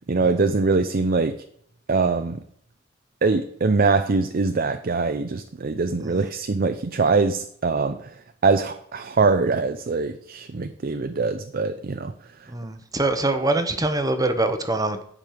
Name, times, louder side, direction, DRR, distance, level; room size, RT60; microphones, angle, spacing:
voice 1, 0.1-1.4 1.9-2.4 3.2-8.1 8.4-12.1, right 4 dB, 50° right, 8 dB, 0.6 m, -23 dB
voice 2, 12.5-15.0, right 2 dB, 20° right, 8 dB, 1.0 m, -24 dB
10.5 x 5.4 x 6.7 m, 0.65 s
head